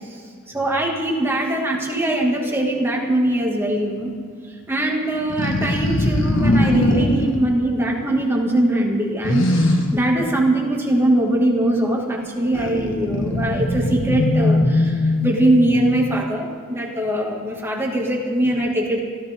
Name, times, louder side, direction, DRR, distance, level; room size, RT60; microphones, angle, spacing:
voice 1, 0.5-4.1 4.7-19.0, right 1 dB, 10° right, -1 dB, 2.2 m, -21 dB
sound 1, 5.1-7.4 9.2-10.0 12.5-16.0, left 1 dB, 65° left, 1.7 m, -20 dB
24.5 x 14.5 x 3.7 m, 2.2 s
head